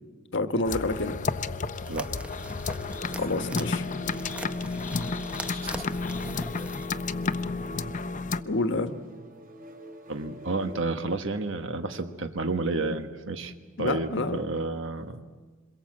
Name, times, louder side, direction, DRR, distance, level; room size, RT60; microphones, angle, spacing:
voice 1, 0.3-1.2 3.0-3.8 8.4-8.9 13.8-14.4, left 2 dB, 60° left, 9 dB, 1.3 m, -28 dB
sound 1, 0.6-8.4, left 4 dB, 40° left, 0.6 m, -31 dB
sound 2, 1.7-6.9, right 1 dB, 5° right, 0.8 m, -41 dB
voice 2, 1.9-2.2 5.5-5.7 10.1-13.5 13.8-15.2, right 3 dB, 65° right, 7 dB, 1.4 m, -31 dB
sound 3, 2.7-11.1, right 2 dB, 45° right, 3.7 m, -47 dB
27.5 x 22.0 x 7.6 m, 1.4 s
head